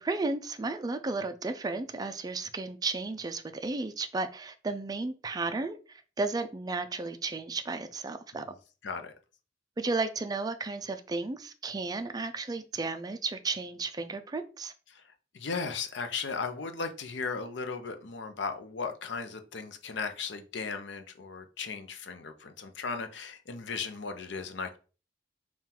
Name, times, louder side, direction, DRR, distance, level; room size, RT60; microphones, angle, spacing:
voice 1, 0.0-8.5 9.8-14.7, right 3 dB, 20° right, 0.3 m, -33 dB
voice 2, 8.8-9.1 14.9-15.0 15.3-24.8, left 5 dB, 65° left, 0.6 m, -36 dB
3.7 x 2.4 x 4.2 m
head